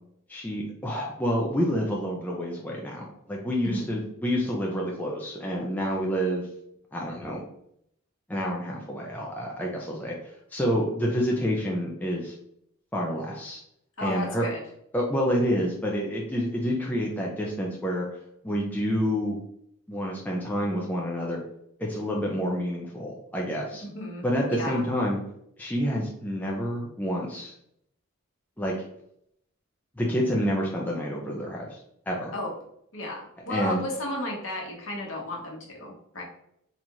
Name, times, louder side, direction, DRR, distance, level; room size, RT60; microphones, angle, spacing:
voice 1, 0.3-6.5 6.9-7.4 8.3-10.2 10.5-12.3 12.9-13.6 14.0-14.5 14.9-18.1 18.4-19.4 19.9-21.4 21.8-23.8 24.2-25.2 25.6-27.5 28.6-28.7 30.0-31.8 32.1-32.3 33.5-33.8, equal, 5° left, -2 dB, 0.4 m, -28 dB
voice 2, 3.6-4.0 14.0-14.6 23.8-24.8 32.3-32.5 32.9-36.2, left 1 dB, 60° left, -1 dB, 1.1 m, -34 dB
4.1 x 2.4 x 2.9 m, 0.72 s
head